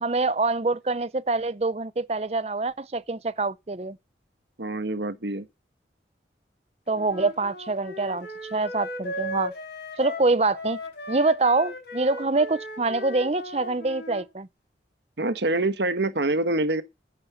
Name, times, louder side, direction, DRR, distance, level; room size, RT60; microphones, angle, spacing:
voice 1, 0.0-4.0 6.9-9.5 10.0-10.8 11.1-14.5, right 3 dB, 35° right, 0.6 m, -25 dB
voice 2, 4.6-5.4 15.2-16.8, right 2 dB, 80° right, 1.3 m, -25 dB
Wind instrument woodwind instrument, 6.9-14.2, left 1 dB, 70° left, 4.5 m, -37 dB
9.7 x 9.7 x 5.7 m
head